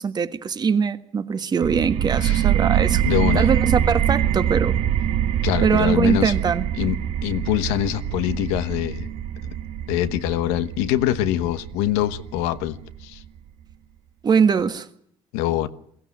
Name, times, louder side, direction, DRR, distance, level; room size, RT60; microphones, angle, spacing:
voice 1, 0.0-3.0 3.3-4.8 5.6-6.7 14.2-14.9, right 6 dB, 40° right, 1.6 m, -22 dB
sound 1, 1.6-13.0, right 10 dB, 70° right, 1.2 m, -24 dB
voice 2, 3.0-3.5 5.4-6.3 6.7-9.1 9.4-9.5 9.9-13.2 15.3-15.7, left 13 dB, 90° left, 1.1 m, -24 dB
22.0 x 15.5 x 9.6 m
supercardioid pair, 75°, 11 cm